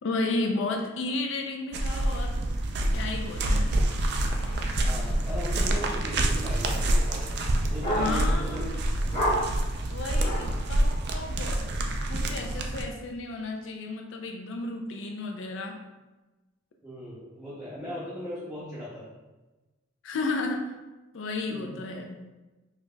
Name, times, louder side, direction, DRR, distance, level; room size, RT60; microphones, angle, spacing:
voice 1, 0.0-2.5 2.9-3.7 8.0-8.7 9.9-15.8 20.0-20.8 21.1-22.2, left 3 dB, 70° left, 2 dB, 0.4 m, -33 dB
sound 1, 1.7-12.8, right 1 dB, 55° right, 0.4 m, -27 dB
sound 2, 2.9-8.5 9.0-10.5, equal, 30° left, 1.1 m, -34 dB
voice 2, 4.8-7.3 7.7-8.8 16.8-19.2 21.5-21.8, equal, 5° right, -11 dB, 0.6 m, -38 dB
4.8 x 2.8 x 2.2 m, 1.1 s
head